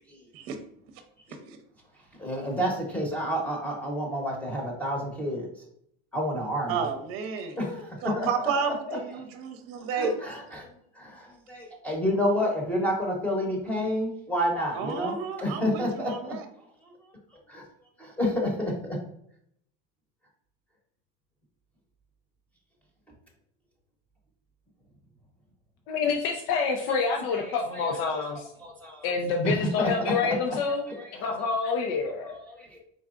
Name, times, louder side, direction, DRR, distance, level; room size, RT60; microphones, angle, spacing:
voice 1, 2.2-5.5 6.1-6.9 7.6-9.1 9.8-10.7 10.9-16.3 16.8-16.9 17.5-17.6 18.0-19.0 26.9-29.1 29.4-31.6 32.0-32.8, equal, 5° left, -1 dB, 0.9 m, -30 dB
voice 2, 6.7-7.6 8.0-10.1 14.7-16.4, right 6 dB, 45° right, 7 dB, 0.7 m, -31 dB
voice 3, 25.9-28.5 29.0-30.8 31.2-32.4, left 5 dB, 70° left, 2 dB, 0.7 m, -27 dB
4.5 x 4.0 x 2.4 m, 0.71 s
supercardioid pair, 160°, 31 cm